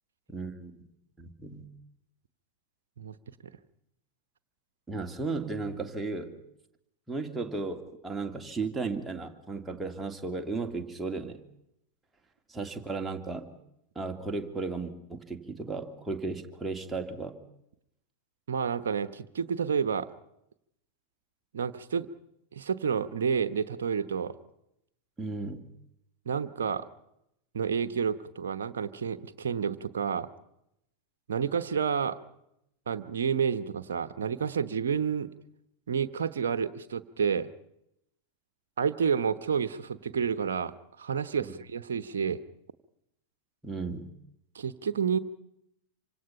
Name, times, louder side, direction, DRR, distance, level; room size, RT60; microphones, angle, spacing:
voice 1, 0.3-0.8 1.2-1.7 4.9-6.4 7.1-11.4 12.5-13.5 14.0-17.4 25.2-25.7 41.4-41.5 43.6-44.1, right 3 dB, 10° right, 3 dB, 2.4 m, -35 dB
voice 2, 18.5-20.1 21.5-22.1 22.5-24.4 26.3-26.9 27.5-30.3 31.3-32.2 32.9-35.3 35.9-37.5 38.8-42.4 44.5-45.2, right 6 dB, 65° right, 12 dB, 1.0 m, -29 dB
27.0 x 25.0 x 5.7 m, 0.81 s
figure-of-eight pair, 90°, 0 cm